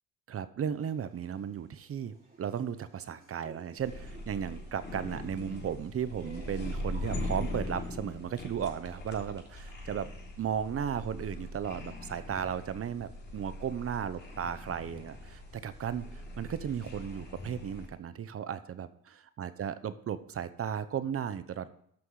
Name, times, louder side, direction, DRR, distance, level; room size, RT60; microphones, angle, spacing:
voice 1, 0.3-10.1 10.4-21.7, right 8 dB, 50° right, 13 dB, 0.9 m, -35 dB
Laughter, 0.7-7.6, right 3 dB, 30° right, 3.3 m, -58 dB
sound 1, 3.8-17.9, left 1 dB, 35° left, 3.3 m, -41 dB
13.0 x 6.2 x 4.8 m, 0.68 s
cardioid pair, 90°, 30 cm